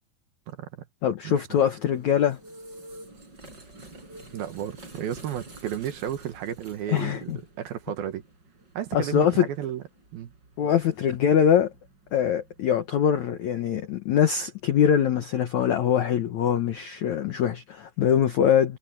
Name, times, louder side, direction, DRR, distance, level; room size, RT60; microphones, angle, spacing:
voice 1, 0.5-0.9 1.2-1.6 4.3-8.2 8.7-9.8 10.1-10.3, right 10 dB, 70° right, 2.7 m, -33 dB
voice 2, 1.0-2.4 6.9-7.4 8.9-9.5 10.6-11.7 12.1-18.8, left 9 dB, 80° left, 1.7 m, -23 dB
sound 1, 1.5-12.9, right 2 dB, 25° right, 5.4 m, -49 dB
omnidirectional pair, 5.1 m